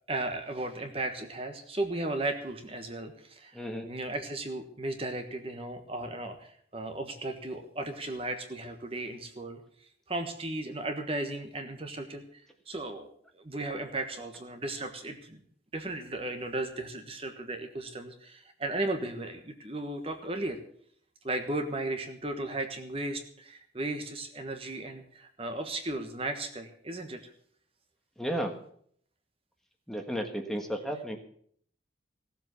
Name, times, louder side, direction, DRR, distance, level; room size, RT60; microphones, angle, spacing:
voice 1, 0.1-9.6 10.1-15.4 15.7-20.6 21.2-27.2, right 2 dB, 30° right, 6 dB, 1.4 m, -35 dB
voice 2, 3.5-3.9 28.2-28.6 29.9-31.2, equal, ahead, 3 dB, 1.4 m, -33 dB
16.0 x 7.8 x 8.1 m, 0.62 s
head